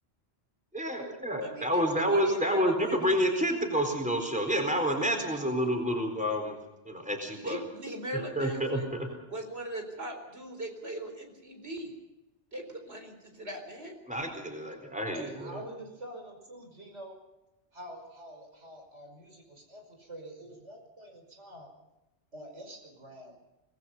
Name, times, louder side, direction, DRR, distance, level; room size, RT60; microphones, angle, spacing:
voice 1, 0.7-6.6 6.9-7.6 8.4-9.1 14.1-15.6, equal, 5° right, 3 dB, 4.2 m, -29 dB
voice 2, 1.4-3.2 5.4-5.7 7.4-8.9 9.3-11.9 12.5-14.0, right 1 dB, 65° right, 4 dB, 4.5 m, -40 dB
voice 3, 15.1-17.2 17.7-21.7 22.3-23.3, right 1 dB, 85° right, 2 dB, 5.8 m, -46 dB
25.5 x 19.5 x 5.7 m, 0.95 s
omnidirectional pair, 1.2 m